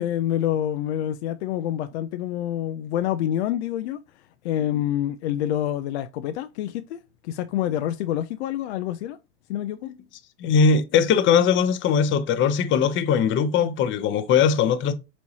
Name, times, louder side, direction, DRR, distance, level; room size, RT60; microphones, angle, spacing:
voice 1, 0.0-4.0 4.4-9.2 9.5-9.9, left 11 dB, 80° left, 0.5 m, -27 dB
voice 2, 10.4-14.9, left 6 dB, 35° left, 0.7 m, -20 dB
4.6 x 4.2 x 2.7 m
hypercardioid pair, 110°, 33 cm